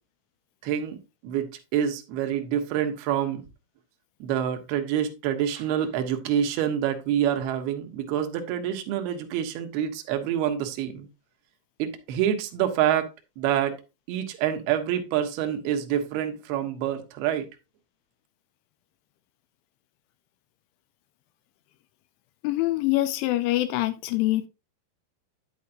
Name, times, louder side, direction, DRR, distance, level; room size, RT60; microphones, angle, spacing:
voice 1, 0.6-3.4 4.2-11.1 11.8-13.1 13.4-13.8 14.1-17.5, right 10 dB, 75° right, 2.4 m, -27 dB
voice 2, 22.4-24.5, left 17 dB, 90° left, 2.6 m, -24 dB
9.7 x 8.3 x 2.6 m
omnidirectional pair, 6.0 m